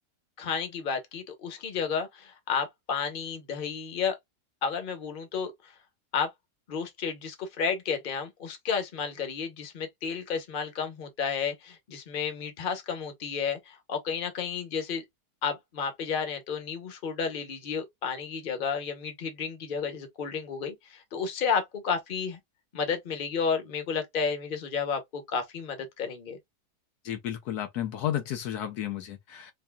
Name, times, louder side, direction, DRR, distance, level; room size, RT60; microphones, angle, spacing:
voice 1, 0.4-4.2 4.6-5.5 6.1-6.3 6.7-15.0 15.4-22.4 22.7-26.4, left 6 dB, 40° left, 1.0 m, -32 dB
voice 2, 27.0-29.5, left 11 dB, 75° left, 1.2 m, -32 dB
4.6 x 2.7 x 2.2 m
omnidirectional pair, 1.7 m